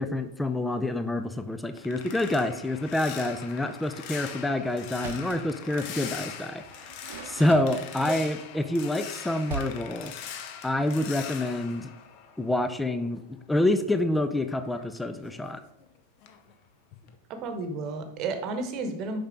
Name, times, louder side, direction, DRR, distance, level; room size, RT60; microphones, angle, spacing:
voice 1, 0.0-6.9 7.2-10.1 10.6-11.9 12.4-15.6, left 1 dB, 5° left, 10 dB, 0.4 m, -27 dB
sound 1, 1.2-12.9 13.2-15.9 16.2-16.5 16.9-17.2, left 8 dB, 45° left, 0.7 m, -42 dB
Door, 4.9-5.4 6.6-8.3 9.4-9.9, right 5 dB, 60° right, 0.8 m, -39 dB
voice 2, 17.3-19.2, right 3 dB, 35° right, 7 dB, 1.0 m, -32 dB
6.7 x 5.4 x 3.6 m, 0.93 s
figure-of-eight pair, 90°, 0 cm